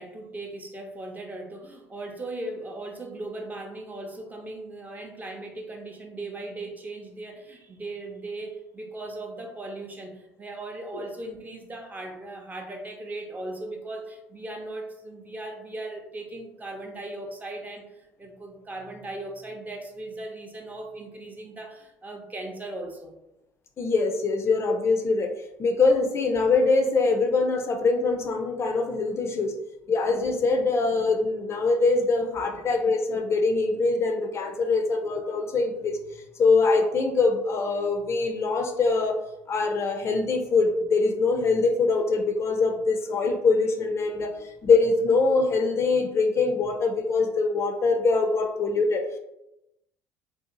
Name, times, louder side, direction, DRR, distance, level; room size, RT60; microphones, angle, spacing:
voice 1, 0.0-23.2 44.1-44.2, right 2 dB, 25° right, 2 dB, 0.6 m, -38 dB
voice 2, 23.8-25.3 25.6-29.6 29.9-36.0 36.4-39.2 39.5-49.0, left 3 dB, 40° left, 4 dB, 0.4 m, -23 dB
2.7 x 2.4 x 2.5 m, 0.88 s
hypercardioid pair, 65°, 7 cm